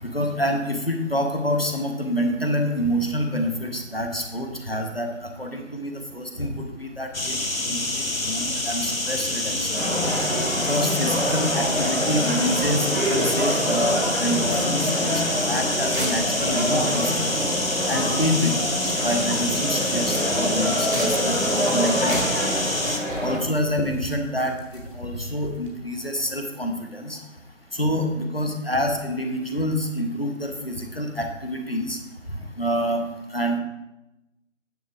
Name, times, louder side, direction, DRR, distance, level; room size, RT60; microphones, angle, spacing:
voice 1, 0.0-7.4 7.6-9.8 10.7-14.9 15.1-17.3 17.9-22.3 23.2-27.2 27.7-32.0 32.6-33.0 33.3-33.6, equal, 45° left, 4 dB, 1.0 m, -27 dB
sound 1, 7.1-23.0, left 2 dB, 85° left, 1.3 m, -27 dB
sound 2, 9.7-23.4, equal, 70° right, 2.6 m, -26 dB
sound 3, 15.2-25.7, equal, 40° right, 1.3 m, -39 dB
9.3 x 5.8 x 3.5 m, 0.95 s
figure-of-eight pair, 180°, 39 cm